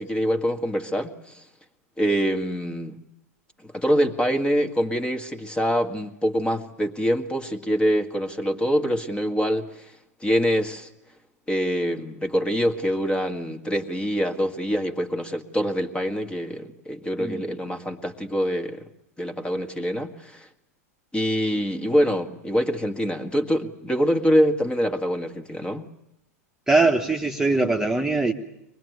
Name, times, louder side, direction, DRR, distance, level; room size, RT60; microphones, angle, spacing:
voice 1, 0.0-1.5 2.0-3.0 3.6-10.9 11.5-18.9 19.2-20.5 21.1-25.9, equal, 10° left, 6 dB, 1.8 m, -25 dB
voice 2, 26.7-28.3, right 3 dB, 5° right, 1 dB, 1.7 m, -21 dB
24.0 x 20.5 x 9.6 m, 0.82 s
hypercardioid pair, 105°, 9 cm